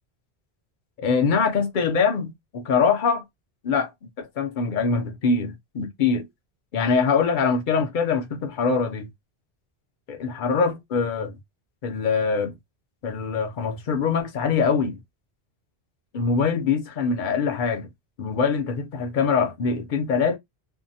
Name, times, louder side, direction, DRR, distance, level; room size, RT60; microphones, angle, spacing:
voice 1, 1.0-3.2 3.6-3.9 4.2-6.3 6.7-9.1 10.1-11.4 11.8-12.5 13.0-15.0 16.1-17.9 18.2-20.4, left 5 dB, 55° left, 0.6 m, -23 dB
2.7 x 2.0 x 2.6 m
omnidirectional pair, 1.1 m